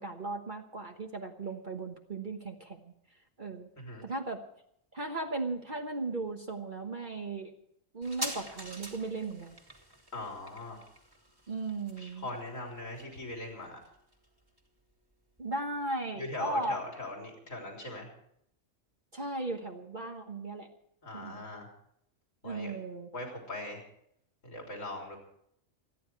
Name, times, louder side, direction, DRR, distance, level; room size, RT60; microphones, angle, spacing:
voice 1, 0.0-2.9 3.4-3.7 4.0-4.4 4.9-7.5 7.9-9.5 11.5-12.3 15.4-16.8 19.1-20.7 21.1-21.4 22.4-23.1, right 2 dB, 40° right, 3 dB, 1.4 m, -36 dB
sound 1, 8.0-15.1 15.4-15.5, right 1 dB, 15° right, 2.2 m, -45 dB
voice 2, 10.1-10.8 12.0-13.8 16.2-18.1 21.0-21.7 22.4-22.7 23.1-23.8 24.4-25.2, left 2 dB, 85° left, 0 dB, 4.3 m, -40 dB
27.0 x 10.5 x 4.6 m, 0.71 s
omnidirectional pair, 1.3 m